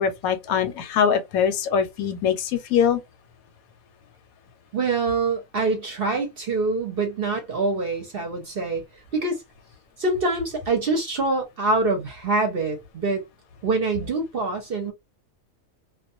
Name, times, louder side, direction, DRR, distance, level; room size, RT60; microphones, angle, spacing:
voice 1, 0.0-3.0, left 7 dB, 80° left, 1.0 m, -22 dB
voice 2, 4.7-8.8 9.1-9.4 10.0-13.2 13.6-14.9, right 3 dB, 55° right, 0.7 m, -25 dB
2.3 x 2.2 x 2.5 m
omnidirectional pair, 1.5 m